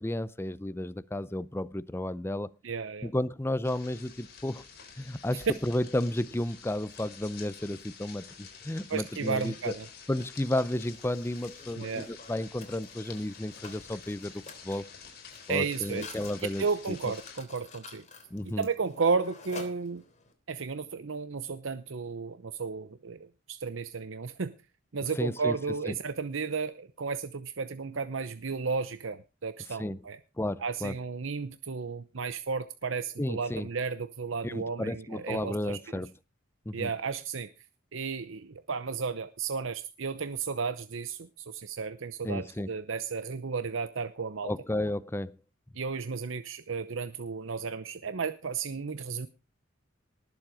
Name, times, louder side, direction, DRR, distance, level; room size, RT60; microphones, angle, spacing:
voice 1, 0.0-2.5 3.0-4.7 5.0-9.7 10.1-14.9 15.5-17.0 18.3-18.7 25.2-25.6 25.9-26.0 29.8-30.0 30.4-30.9 33.2-33.7 34.4-36.1 36.7-36.9 42.2-42.7 44.4-45.3, left 1 dB, 10° left, 0.6 m, -32 dB
voice 2, 2.6-3.1 8.9-9.9 11.8-12.1 15.5-16.1 16.6-18.0 18.4-20.0 20.5-24.5 24.9-30.2 30.6-36.0 36.7-37.5 37.9-44.5 45.7-49.3, right 5 dB, 70° right, 0.8 m, -33 dB
sound 1, 3.6-17.4, left 6 dB, 55° left, 4.3 m, -49 dB
Mechanisms, 10.5-20.3, left 4 dB, 35° left, 3.3 m, -50 dB
19.0 x 7.5 x 4.9 m
head